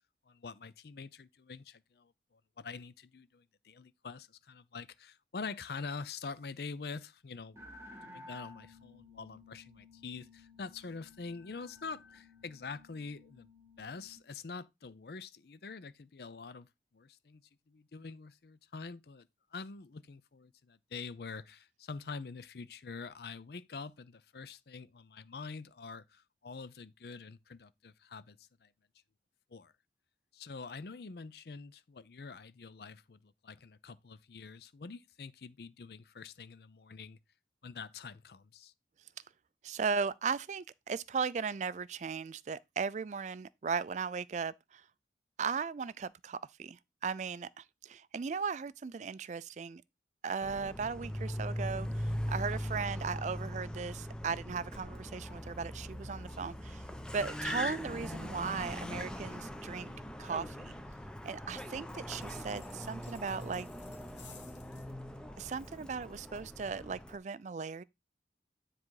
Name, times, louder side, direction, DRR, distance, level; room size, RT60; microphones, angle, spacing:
voice 1, 0.3-7.6 8.0-13.5 13.8-28.7 29.5-29.7 30.3-37.2 37.6-38.7, left 4 dB, 60° left, 0.5 m, -46 dB
sound 1, 7.5-14.2, left 2 dB, 15° right, 1.7 m, -55 dB
voice 2, 39.6-44.8 45.4-49.8 50.2-56.8 57.1-59.9 60.2-60.7 61.2-63.7 65.4-67.8, right 5 dB, 40° right, 0.3 m, -37 dB
Car, 50.4-67.2, equal, 5° left, 0.7 m, -41 dB
sound 2, 62.2-64.9, left 7 dB, 90° left, 1.9 m, -58 dB
9.7 x 3.8 x 4.7 m
head